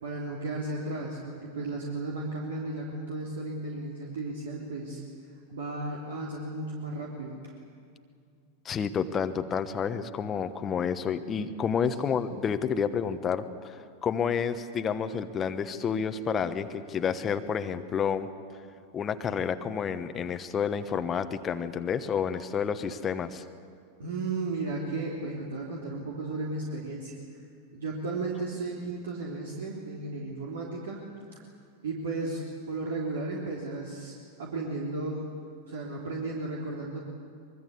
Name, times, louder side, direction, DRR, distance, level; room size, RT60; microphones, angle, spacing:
voice 1, 0.0-5.0 5.5-7.5 12.0-12.3 24.0-27.4 27.7-31.0 31.3-31.4 31.8-35.3 35.6-37.0, right 2 dB, 65° right, -2 dB, 3.2 m, -34 dB
voice 2, 8.6-18.3 18.9-23.4, left 7 dB, 25° left, 9 dB, 1.2 m, -30 dB
24.0 x 22.5 x 8.4 m, 2.3 s
figure-of-eight pair, 90°, 0 cm